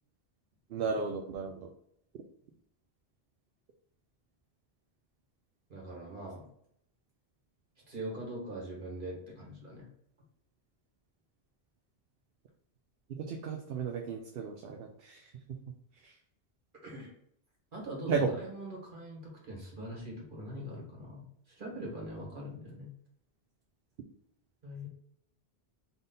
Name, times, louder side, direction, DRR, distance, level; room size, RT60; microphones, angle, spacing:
voice 1, 0.7-1.7 13.2-15.2 16.0-16.1 18.1-18.3, right 5 dB, 65° right, 4 dB, 0.8 m, -34 dB
voice 2, 5.7-6.5 7.9-9.9 16.8-17.1 17.7-22.9 24.6-24.9, right 1 dB, 50° right, -3 dB, 1.7 m, -42 dB
4.0 x 3.5 x 3.8 m, 0.71 s
omnidirectional pair, 1.1 m